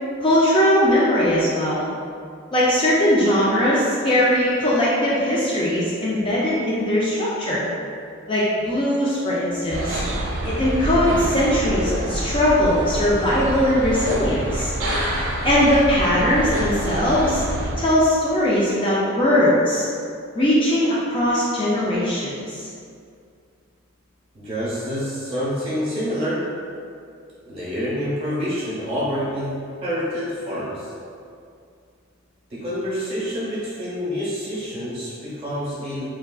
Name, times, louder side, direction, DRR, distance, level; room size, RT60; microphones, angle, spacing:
voice 1, 0.2-1.9 2.5-7.6 8.3-10.0 10.4-14.7 15.4-17.4 17.8-19.9 20.3-22.7, left 1 dB, 25° left, -7 dB, 0.3 m, -20 dB
sound 1, 9.7-17.7, right 1 dB, 60° right, 0.5 m, -27 dB
voice 2, 24.3-26.5 27.4-30.9 32.5-36.1, equal, 25° right, -8 dB, 0.9 m, -27 dB
3.5 x 2.3 x 2.3 m, 2.3 s
head